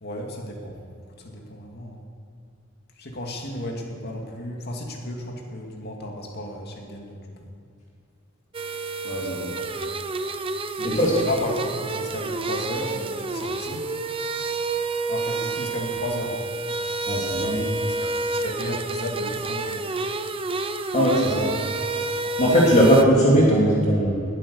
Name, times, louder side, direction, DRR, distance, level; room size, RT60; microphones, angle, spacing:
voice 1, 0.0-0.8 1.2-2.0 3.0-7.2 9.1-9.7 10.8-13.8 15.1-16.4 17.3-19.9 22.0-22.3, left 1 dB, 50° left, 1 dB, 2.4 m, -34 dB
sound 1, 8.5-23.0, right 3 dB, 25° right, 0.7 m, -29 dB
voice 2, 9.0-9.5 10.8-11.1 17.1-17.6 20.9-21.5 22.4-24.2, equal, 35° left, -4 dB, 2.4 m, -19 dB
20.0 x 8.9 x 7.0 m, 2.4 s
head